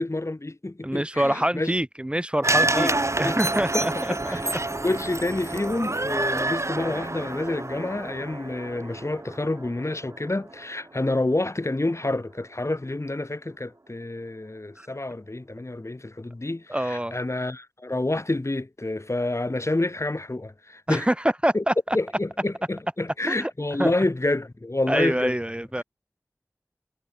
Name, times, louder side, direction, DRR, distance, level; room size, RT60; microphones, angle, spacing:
voice 1, 0.0-1.7 2.7-4.5 4.8-21.1 21.5-21.6 21.9-25.3, left 2 dB, 50° left, 5.9 m, -28 dB
voice 2, 0.8-2.9 3.2-4.1 14.7-14.9 16.7-17.2 20.9-22.0 23.3-23.5 23.8-23.9 24.9-25.8, right 1 dB, 15° right, 3.2 m, -25 dB
sound 1, 2.4-10.7 11.0-11.1, right 2 dB, 50° right, 2.9 m, -28 dB
wide cardioid pair, 50°, 6 cm